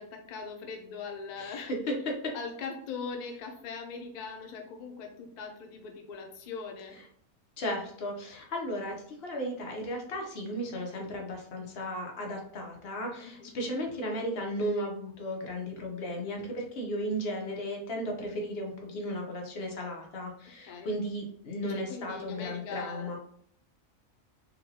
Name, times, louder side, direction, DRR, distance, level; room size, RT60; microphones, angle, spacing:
voice 1, 0.0-1.7 2.3-7.0 13.2-13.5 20.6-20.9 21.7-23.2, left 5 dB, 85° left, 2 dB, 0.3 m, -41 dB
voice 2, 1.4-2.3 7.6-23.2, equal, 55° left, 1 dB, 0.9 m, -35 dB
3.9 x 2.2 x 2.7 m, 0.65 s
omnidirectional pair, 1.4 m